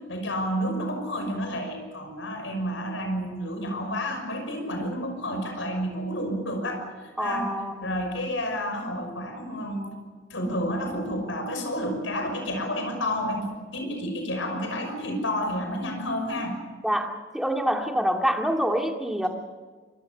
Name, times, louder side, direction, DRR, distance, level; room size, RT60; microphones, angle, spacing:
voice 1, 0.0-7.5 7.8-9.9 10.3-16.6, equal, 80° left, 4 dB, 5.9 m, -30 dB
voice 2, 7.2-8.0 16.8-19.3, equal, ahead, 3 dB, 2.1 m, -26 dB
25.5 x 22.5 x 6.7 m, 1.5 s
head